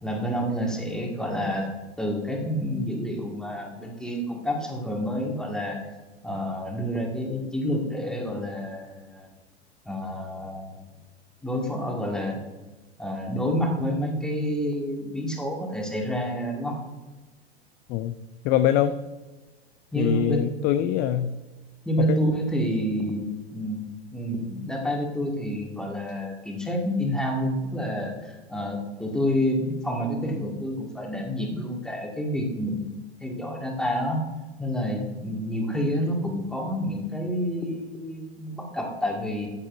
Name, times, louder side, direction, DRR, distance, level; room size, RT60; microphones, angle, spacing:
voice 1, 0.0-1.7 2.0-5.8 6.2-9.3 9.9-10.8 11.4-12.4 13.0-16.8 19.9-20.5 21.9-34.2 34.6-39.5, equal, ahead, 0 dB, 2.0 m, -28 dB
voice 2, 18.4-18.9 20.0-21.4 22.1-22.2, left 11 dB, 30° left, 11 dB, 0.4 m, -23 dB
13.5 x 8.7 x 2.6 m, 1.2 s
hypercardioid pair, 100°, 33 cm